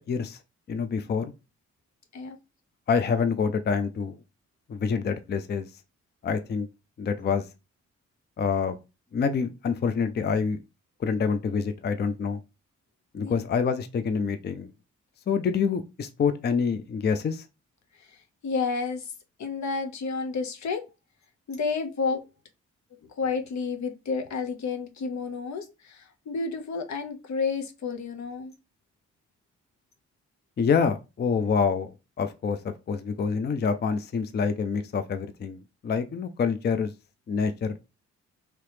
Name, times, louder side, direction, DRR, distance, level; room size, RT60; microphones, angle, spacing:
voice 1, 0.1-0.4 0.7-1.3 2.9-4.2 4.7-5.7 6.2-6.7 7.0-7.5 8.4-8.8 9.1-10.6 11.0-12.4 13.1-14.7 15.3-17.4 30.6-31.9 32.2-36.9 37.3-37.8, left 5 dB, 35° left, 0.4 m, -26 dB
voice 2, 18.0-19.1 19.4-20.8 21.5-22.2 23.2-28.5, left 4 dB, 70° left, 0.8 m, -31 dB
2.9 x 2.9 x 3.2 m
supercardioid pair, 55°, 30 cm